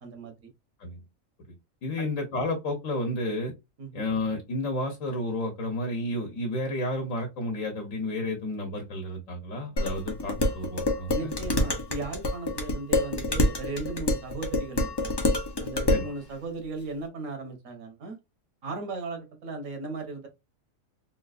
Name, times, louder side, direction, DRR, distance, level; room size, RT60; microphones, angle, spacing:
voice 1, 0.0-0.5 2.0-2.1 3.8-4.0 11.1-15.1 15.6-18.2 18.6-20.3, right 3 dB, 90° right, 1.5 m, -37 dB
voice 2, 1.8-3.5 3.9-11.3 15.9-16.0, left 1 dB, 85° left, 1.3 m, -31 dB
Dishes pots and pans, 9.8-16.1, left 1 dB, 25° left, 0.5 m, -27 dB
3.8 x 2.4 x 2.4 m
omnidirectional pair, 1.3 m